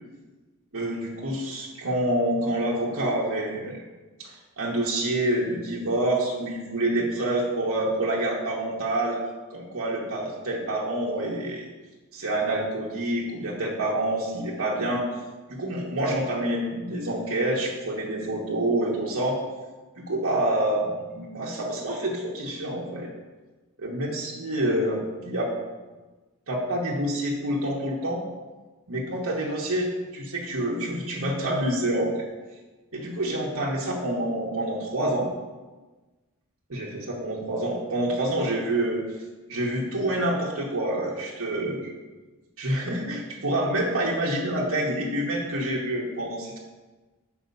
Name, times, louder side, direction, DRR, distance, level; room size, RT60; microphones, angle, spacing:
voice 1, 0.7-3.8 4.2-9.2 9.5-11.7 12.1-15.0 15.5-19.4 20.0-23.1 23.8-25.5 26.5-28.2 28.9-32.1 32.9-35.3 36.7-39.0 39.5-41.9 42.6-46.6, right 1 dB, 70° right, -4 dB, 1.3 m, -27 dB
7.0 x 5.3 x 5.3 m, 1.2 s
head